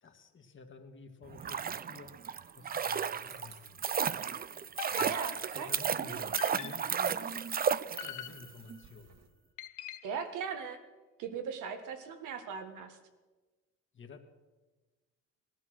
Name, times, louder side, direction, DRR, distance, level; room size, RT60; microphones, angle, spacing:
voice 1, 0.0-2.2 2.6-3.8 4.9-5.2 5.5-7.5 7.9-9.2 13.9-14.2, left 4 dB, 40° left, 4 dB, 1.8 m, -51 dB
sound 1, 1.3-8.4 8.7-8.8, right 7 dB, 30° right, 0.5 m, -33 dB
sound 2, 1.9-9.3, right 5 dB, 55° right, 1.9 m, -60 dB
sound 3, 4.8-5.8 6.4-7.1 8.0-8.8 9.6-10.3, left 13 dB, 80° left, 0.7 m, -44 dB
voice 2, 5.0-5.7 6.0-6.3 10.0-10.8 11.2-13.0, right 6 dB, 90° right, 6 dB, 1.7 m, -39 dB
18.5 x 12.5 x 6.3 m, 1.3 s
cardioid pair, 90°, 30 cm